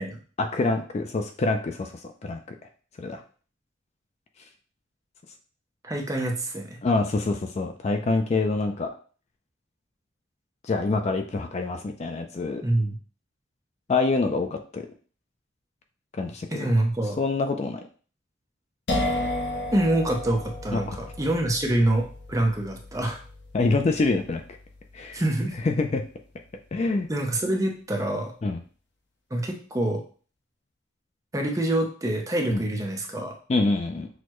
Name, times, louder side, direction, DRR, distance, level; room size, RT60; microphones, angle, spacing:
voice 1, 0.4-2.4 3.0-3.2 6.8-8.9 10.6-12.6 13.9-14.9 16.1-16.7 17.2-17.8 20.7-21.0 23.5-24.4 24.9-25.2 25.6-26.0 26.7-27.1 28.4-28.6 32.5-32.6 33.5-34.1, left 3 dB, 35° left, 5 dB, 0.3 m, -26 dB
voice 2, 5.8-6.8 12.6-13.0 16.5-17.2 19.7-23.2 25.1-25.6 27.1-28.3 29.3-30.0 31.3-33.4, right 1 dB, 15° right, 2 dB, 0.6 m, -26 dB
sound 1, 18.9-26.4, left 1 dB, 60° left, 0.7 m, -34 dB
6.2 x 2.1 x 3.0 m, 0.40 s
head